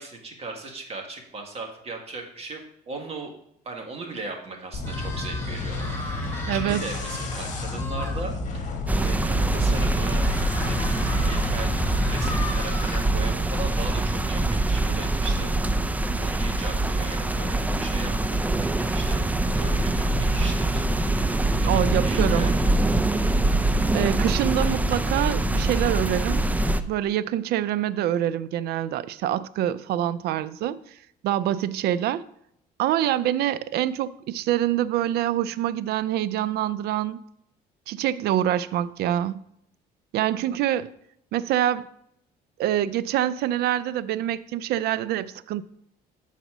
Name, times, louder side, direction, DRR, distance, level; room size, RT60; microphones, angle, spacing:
voice 1, 0.0-2.6 2.9-3.3 3.6-8.3 9.0-10.3 10.6-19.2 19.5-21.3 21.6-22.6, right 3 dB, 35° right, 1.7 m, -38 dB
sound 1, 4.7-12.4, left 3 dB, 45° left, 1.7 m, -31 dB
sound 2, 4.8-8.2 8.7-8.8 9.1-9.2 10.2-13.0, left 2 dB, 15° left, 1.5 m, -38 dB
voice 2, 6.5-6.8 21.7-22.5 23.9-26.4 26.9-30.8 31.2-32.2 32.8-37.2 37.9-39.4 40.1-40.9 41.3-41.9 42.6-45.6, right 12 dB, 70° right, 0.4 m, -25 dB
sound 3, 8.9-26.8, right 2 dB, 10° right, 0.4 m, -24 dB
8.0 x 4.2 x 6.0 m
cardioid pair, 110°, 17 cm